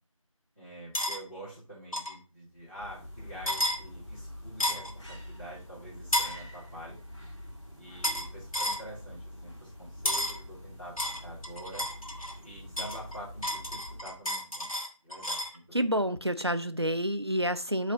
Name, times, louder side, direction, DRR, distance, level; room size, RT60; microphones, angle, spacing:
voice 1, 0.6-7.0 7.8-11.8 12.4-14.7 15.0-16.0, equal, 25° left, 2.7 m, -46 dB
forks in a bowl in a sink, 0.9-1.2 1.9-2.2 3.5-3.8 4.6-4.9 6.1-6.4 8.0-8.3 8.5-8.8 10.1-10.4 11.0-12.4 12.8-15.6, left 1 dB, 75° left, 1.4 m, -31 dB
sound 1, 2.5-14.3, left 1 dB, 55° left, 2.4 m, -46 dB
voice 2, 15.7-17.9, equal, 50° right, 0.4 m, -28 dB
6.6 x 3.3 x 5.3 m
figure-of-eight pair, 180°, 18 cm